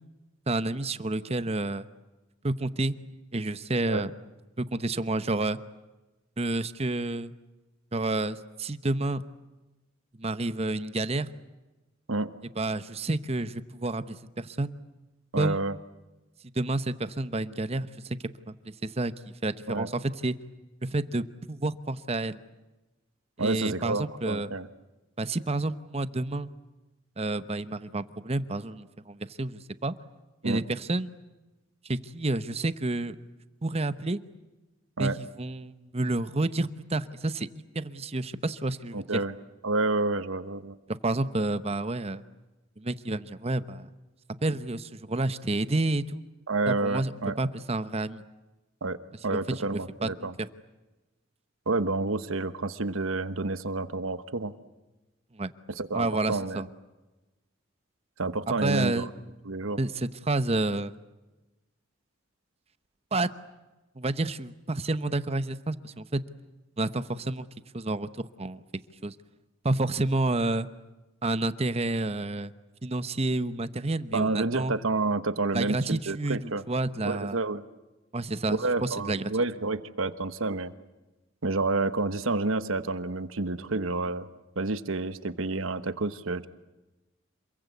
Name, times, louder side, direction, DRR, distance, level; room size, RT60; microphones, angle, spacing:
voice 1, 0.5-1.9 2.4-3.0 3.3-4.1 4.6-5.6 6.4-7.3 7.9-9.2 10.2-11.3 12.6-14.8 15.4-15.6 16.5-18.2 18.5-18.6 18.8-19.1 19.4-20.4 20.8-22.4 23.4-24.5 25.2-26.5 27.2-29.9 30.4-31.1 31.8-33.2 33.6-34.2 35.0-37.5 37.7-39.2 40.9-42.2 42.8-43.9 44.4-46.2 46.7-47.1 47.4-48.2 49.3-49.4 49.7-50.1 50.4-50.5 55.3-55.5 55.9-56.7 58.6-59.1 59.8-60.9 63.1-63.3 64.0-66.2 66.8-67.5 67.7-68.6 69.0-69.1 69.6-70.7 71.2-72.5 72.8-74.7 75.5-77.4 78.1-79.3, right 2 dB, 30° right, 13 dB, 0.9 m, -29 dB
voice 2, 15.3-15.8 19.7-19.9 23.4-24.7 30.4-30.6 35.0-35.2 38.9-39.3 39.6-40.7 46.5-47.4 48.8-49.0 49.2-50.4 51.7-54.5 55.7-56.7 58.2-59.1 59.4-59.8 74.1-76.6 77.0-77.6 78.5-80.7 81.4-84.3 84.6-86.5, right 3 dB, 80° right, 12 dB, 1.2 m, -29 dB
27.5 x 22.0 x 8.4 m, 1.1 s
head